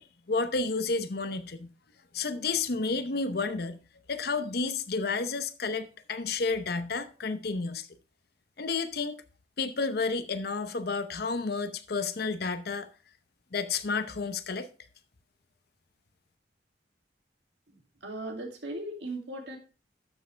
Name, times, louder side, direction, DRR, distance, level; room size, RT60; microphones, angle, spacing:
voice 1, 0.0-1.7 2.1-3.8 4.1-7.9 8.6-9.2 9.6-12.9 13.5-14.7, left 4 dB, 55° left, 0.8 m, -31 dB
voice 2, 17.7-19.6, right 1 dB, 70° right, 2.5 m, -38 dB
12.0 x 6.7 x 3.3 m
head